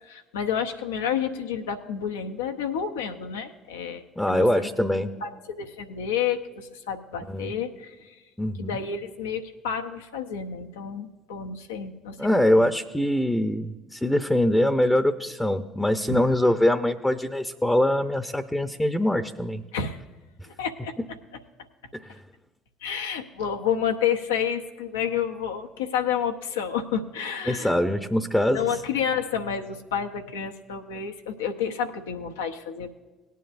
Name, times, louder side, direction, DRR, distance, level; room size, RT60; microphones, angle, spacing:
voice 1, 0.0-4.7 5.2-8.2 8.6-12.7 16.1-16.2 19.7-20.0 20.5-20.9 22.8-28.0 28.5-32.9, left 7 dB, 80° left, 5 dB, 0.8 m, -30 dB
voice 2, 4.2-5.1 7.3-7.5 8.4-8.8 12.2-19.6 21.9-22.1 27.5-28.6, left 1 dB, 10° left, 8 dB, 0.8 m, -23 dB
19.0 x 9.4 x 2.6 m, 1.3 s
hypercardioid pair, 55°, 0 cm